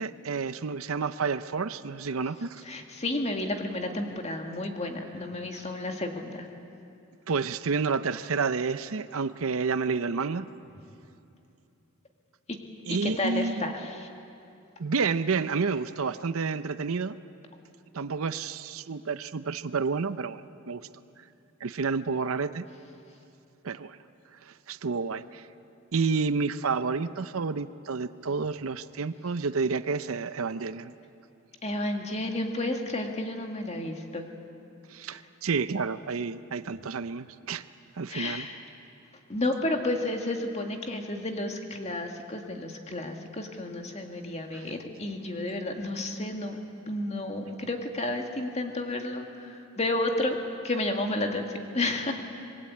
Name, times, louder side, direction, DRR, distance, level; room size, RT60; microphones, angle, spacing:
voice 1, 0.0-2.6 5.5-5.6 7.3-10.5 12.9-13.7 14.8-17.2 17.9-20.4 20.7-20.8 21.6-22.7 23.6-24.0 24.4-25.4 25.9-30.9 34.9-37.6 38.0-38.5 44.5-44.7, right 4 dB, 70° right, 13 dB, 0.6 m, -30 dB
voice 2, 2.6-6.5 12.9-14.1 31.6-34.3 35.1-35.2 38.1-38.6 39.3-46.6 46.9-50.4 50.6-51.5 51.7-52.1, left 2 dB, 30° left, 3 dB, 2.0 m, -31 dB
26.5 x 21.5 x 8.6 m, 2.7 s
head